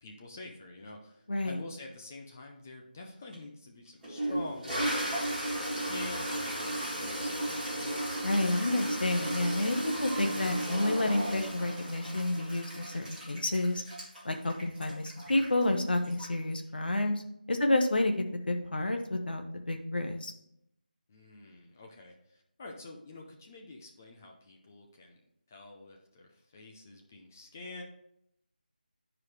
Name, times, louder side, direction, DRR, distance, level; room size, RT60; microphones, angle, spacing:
voice 1, 0.0-7.8 21.1-25.2 25.5-27.8, left 2 dB, 15° left, 1 dB, 0.5 m, -47 dB
Toilet flush, 3.3-3.4 4.0-16.5, right 1 dB, 5° right, 1.9 m, -35 dB
voice 2, 8.2-13.8 14.2-17.2 17.5-18.1 18.5-20.3, left 2 dB, 75° left, 4 dB, 1.1 m, -30 dB
10.0 x 4.7 x 3.2 m, 0.76 s
figure-of-eight pair, 175°, 5 cm